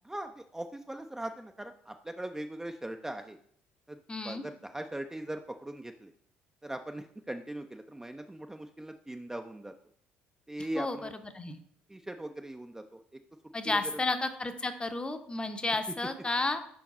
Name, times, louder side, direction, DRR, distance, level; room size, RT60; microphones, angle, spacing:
voice 1, 0.0-3.4 3.9-4.0 4.2-6.1 6.6-9.7 10.5-11.1 11.9-13.0 13.6-13.8, right 1 dB, 10° right, 5 dB, 0.4 m, -40 dB
voice 2, 4.1-4.4 10.7-11.1 11.3-11.6 13.5-16.6, left 2 dB, 20° left, 8 dB, 0.7 m, -32 dB
5.1 x 4.7 x 4.2 m, 0.63 s
hypercardioid pair, 60°, 5 cm